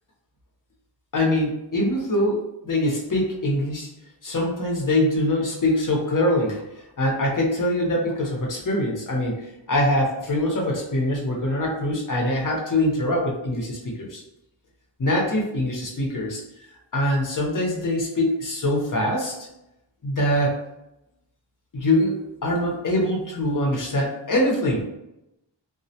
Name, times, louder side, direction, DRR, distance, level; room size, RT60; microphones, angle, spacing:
voice 1, 1.1-3.9 4.2-14.2 15.0-16.4 16.9-19.5 20.0-20.6 21.7-24.8, left 1 dB, 45° left, -1 dB, 0.8 m, -23 dB
2.2 x 2.1 x 2.7 m, 0.89 s
cardioid pair, 50°, 45 cm